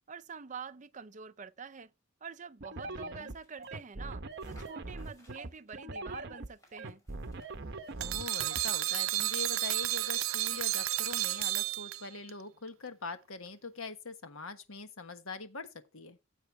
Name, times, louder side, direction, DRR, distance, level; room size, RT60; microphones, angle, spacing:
voice 1, 0.1-1.9 2.2-7.0, right 6 dB, 35° right, 0.6 m, -46 dB
sound 1, 2.6-8.6, right 2 dB, 55° right, 1.0 m, -42 dB
voice 2, 2.8-3.3 8.0-15.7 15.9-16.2, left 4 dB, 90° left, 1.4 m, -43 dB
sound 2, 3.2-3.8 4.3-5.8 6.4-8.4, left 1 dB, 15° left, 5.8 m, -65 dB
sound 3, 8.0-12.3, right 16 dB, 85° right, 0.6 m, -32 dB
15.0 x 8.0 x 3.3 m
head